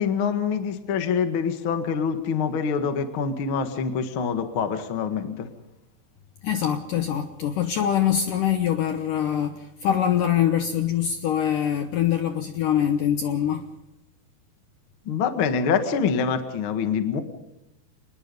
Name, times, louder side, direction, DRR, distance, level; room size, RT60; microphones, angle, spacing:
voice 1, 0.0-5.5 15.0-17.2, left 6 dB, 55° left, 1.5 m, -25 dB
voice 2, 6.4-13.7, left 9 dB, 70° left, 2.1 m, -24 dB
26.0 x 20.5 x 5.5 m
omnidirectional pair, 5.0 m